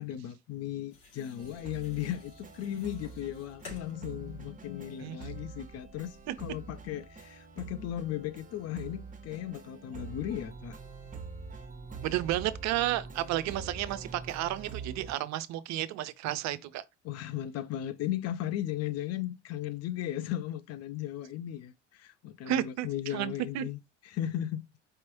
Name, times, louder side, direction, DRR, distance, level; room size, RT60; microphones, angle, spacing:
voice 1, 0.0-10.8 17.0-23.8 24.1-24.7, left 12 dB, 45° left, 0.5 m, -36 dB
sound 1, 0.9-8.3, left 3 dB, 65° left, 2.8 m, -55 dB
sound 2, 1.4-15.1, right 5 dB, 20° right, 1.0 m, -45 dB
voice 2, 12.0-16.8 22.5-23.7, right 13 dB, 50° right, 0.5 m, -32 dB
4.7 x 3.0 x 2.9 m
hypercardioid pair, 65°, 37 cm